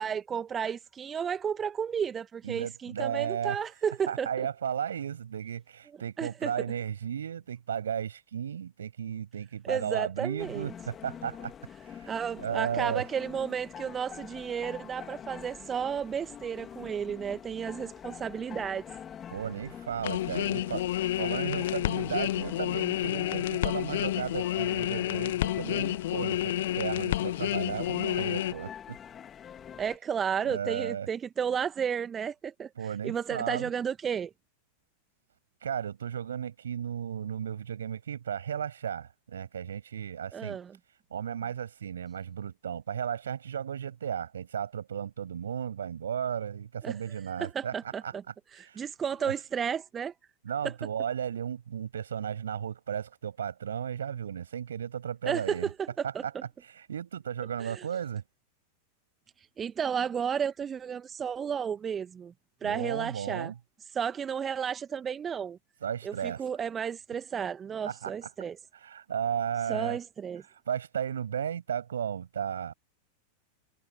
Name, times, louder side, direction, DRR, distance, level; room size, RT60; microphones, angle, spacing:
voice 1, 0.0-4.3 6.2-6.7 9.6-10.7 12.1-18.8 29.8-32.7 33.0-34.3 40.3-40.8 46.8-46.9 47.4-48.2 48.6-50.1 50.6-50.7 55.3-56.4 57.6-57.8 59.6-62.3 62.6-63.5 63.9-65.6 66.0-68.6 69.7-70.4, right 7 dB, 20° right, 1.9 m, -32 dB
voice 2, 2.4-3.6 4.1-11.5 11.9-12.1 12.4-13.0 19.3-29.0 30.4-31.1 32.8-33.7 35.6-40.6 41.1-47.7 48.0-48.1 48.6-48.8 49.2-49.3 50.4-55.7 56.0-56.3 56.6-58.2 62.6-63.6 65.8-66.4 67.8-68.1 68.8-70.0 70.7-72.7, right 8 dB, 65° right, 7.1 m, -34 dB
sound 1, 10.4-30.0, left 8 dB, 25° left, 3.6 m, -45 dB
sound 2, 20.0-28.5, left 14 dB, 55° left, 1.7 m, -30 dB
figure-of-eight pair, 90°, 0 cm